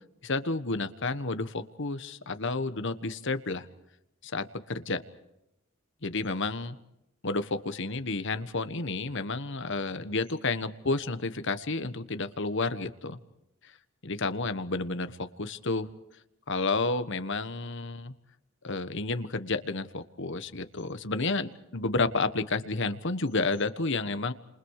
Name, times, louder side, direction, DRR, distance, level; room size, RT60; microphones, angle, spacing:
voice 1, 0.2-3.7 4.2-5.0 6.0-6.8 7.2-13.2 13.6-13.7 14.0-15.9 16.5-18.1 18.6-24.3, left 3 dB, 60° left, 11 dB, 1.4 m, -31 dB
30.0 x 27.5 x 4.9 m, 0.83 s
head